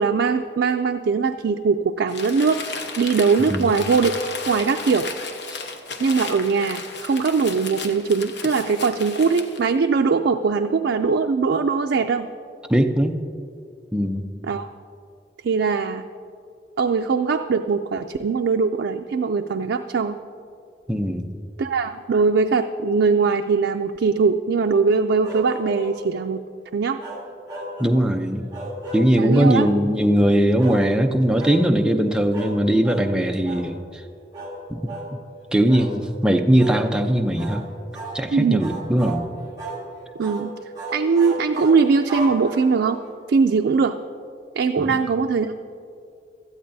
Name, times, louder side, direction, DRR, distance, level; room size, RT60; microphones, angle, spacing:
voice 1, 0.0-2.6 3.0-4.1 4.5-5.1 6.0-12.3 14.4-14.7 15.4-16.1 16.8-20.2 21.6-26.4 26.7-27.0 29.2-29.7 38.3-38.6 40.2-40.5 40.9-43.0 43.3-44.0 44.6-45.6, right 5 dB, 80° right, 5 dB, 0.4 m, -21 dB
Crumpling crinkling, 2.1-9.7, left 4 dB, 85° left, 0.9 m, -34 dB
voice 2, 12.7-13.2 13.9-14.2 20.9-21.3 27.8-28.4 28.9-34.0 34.7-34.8 35.5-37.7 38.1-39.2 44.8-45.0, right 1 dB, 5° right, 4 dB, 0.5 m, -20 dB
sound 1, 25.2-26.0 27.0-28.0 28.5-29.6 30.6-30.9 31.4-31.6 32.3-32.6 32.8-33.1 33.4-33.7 34.3-34.6 34.9-35.1 35.7-35.9 36.6-36.8 37.4-37.6 37.9-38.2 38.6-39.2 39.6-39.8 40.2-40.5 40.8-42.9, right 1 dB, 20° right, 1.7 m, -33 dB
17.5 x 12.5 x 2.7 m, 2.4 s
head